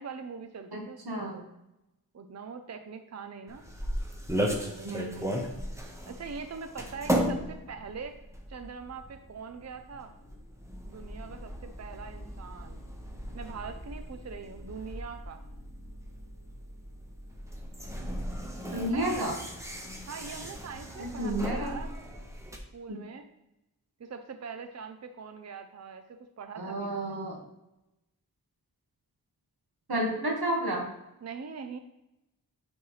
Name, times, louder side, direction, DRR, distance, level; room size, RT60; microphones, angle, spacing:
voice 1, 0.0-1.4 2.1-3.7 4.6-5.6 6.1-8.2 8.5-10.1 10.9-12.8 13.3-15.4 18.9-19.3 20.1-21.9 22.7-23.3 24.0-27.0 31.2-31.8, right 5 dB, 45° right, 7 dB, 0.5 m, -42 dB
voice 2, 0.7-1.4 4.8-5.3 18.7-19.4 21.0-21.8 22.9-23.1 26.5-27.4 29.9-30.9, right 1 dB, 90° right, 0 dB, 1.7 m, -31 dB
sound 1, 3.5-22.6, equal, 10° right, 1.1 m, -36 dB
9.3 x 4.5 x 3.2 m, 0.90 s
wide cardioid pair, 75°, 37 cm